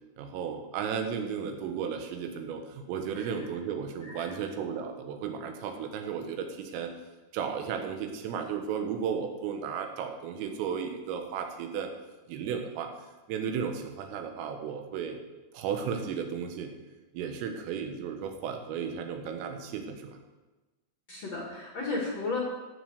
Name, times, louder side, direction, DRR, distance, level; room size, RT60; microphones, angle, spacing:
voice 1, 0.2-6.9 7.3-11.9 12.3-12.9 13.3-15.2 15.5-16.7 17.1-20.2, right 7 dB, 85° right, 4 dB, 3.9 m, -34 dB
voice 2, 21.1-22.4, left 3 dB, 50° left, -2 dB, 2.2 m, -34 dB
15.5 x 7.6 x 6.5 m, 1.2 s
omnidirectional pair, 5.8 m